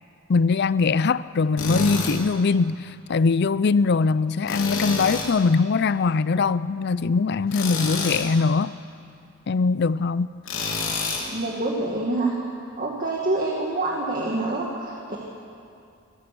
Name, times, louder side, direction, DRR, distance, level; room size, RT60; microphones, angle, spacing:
voice 1, 0.3-8.7 9.5-10.3, left 4 dB, 55° left, 0.5 m, -22 dB
Tools, 1.6-2.2 4.5-5.3 7.5-8.3 10.5-11.3, left 3 dB, 80° left, 3.6 m, -28 dB
voice 2, 11.3-12.3 12.8-15.2, right 2 dB, 45° right, 2.2 m, -26 dB
26.5 x 16.5 x 6.1 m
head